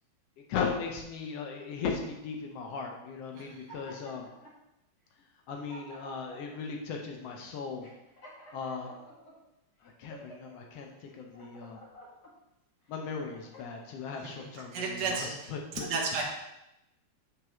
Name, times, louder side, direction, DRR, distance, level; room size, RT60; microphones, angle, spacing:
voice 1, 0.5-4.3 5.5-7.9 8.5-8.9 9.8-11.8 12.9-15.9, left 5 dB, 75° left, 2 dB, 1.5 m, -37 dB
sound 1, 3.3-4.6 5.2-5.3 5.5-6.6 7.2-7.3 7.8-9.3 9.8-10.5 11.1-12.3 12.9-13.9, right 1 dB, 45° left, 1.5 m, -51 dB
voice 2, 3.3-3.7 14.1-16.2, right 4 dB, 55° right, -2 dB, 1.3 m, -35 dB
7.9 x 4.8 x 3.0 m, 0.90 s
omnidirectional pair, 3.4 m